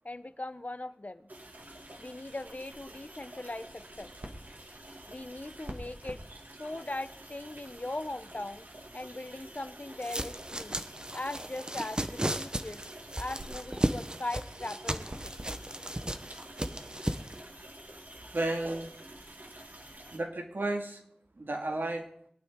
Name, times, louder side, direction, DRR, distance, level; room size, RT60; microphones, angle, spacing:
voice 1, 0.0-1.3 2.0-4.1 5.1-6.2 6.6-8.6 8.9-10.8 11.1-12.8 13.2-15.3, left 2 dB, 45° left, 12 dB, 0.9 m, -39 dB
sound 1, 1.3-20.2, right 1 dB, 55° right, 2.1 m, -48 dB
sound 2, 10.0-17.4, right 1 dB, 25° right, 0.9 m, -35 dB
voice 2, 18.3-18.9 20.1-21.0 21.4-22.0, right 2 dB, 75° right, 3 dB, 2.2 m, -32 dB
22.5 x 9.0 x 3.8 m, 0.67 s
wide cardioid pair, 45°, 4 cm